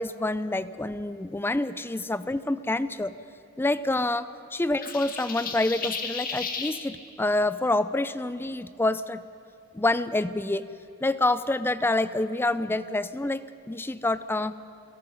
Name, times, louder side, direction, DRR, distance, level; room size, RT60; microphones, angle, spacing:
voice 1, 0.0-3.1 3.6-9.2 9.7-10.7 11.0-14.5, left 2 dB, 10° left, 14 dB, 0.4 m, -27 dB
sound 1, 4.8-6.8, left 5 dB, 40° left, 1.7 m, -33 dB
29.0 x 17.0 x 5.3 m, 2.7 s
head